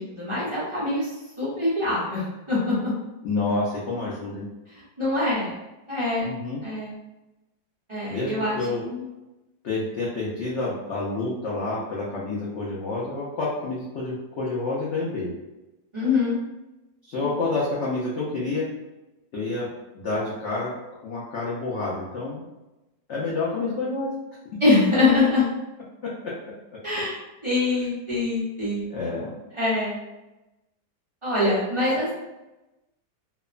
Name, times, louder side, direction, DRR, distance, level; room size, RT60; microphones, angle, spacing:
voice 1, 0.0-2.9 4.7-5.6 5.9-6.3 6.6-6.9 7.9-8.6 8.8-9.1 15.9-16.4 24.6-25.5 26.8-27.1 27.4-28.9 29.5-30.0 31.2-32.1, left 2 dB, 40° right, -10 dB, 0.4 m, -24 dB
voice 2, 3.2-4.5 6.2-6.6 8.1-8.8 9.6-15.3 17.0-18.7 19.3-19.7 19.9-20.7 21.0-22.5 23.1-24.1 28.9-29.3, left 3 dB, 80° left, -6 dB, 0.6 m, -28 dB
2.8 x 2.1 x 2.4 m, 1.0 s
omnidirectional pair, 1.9 m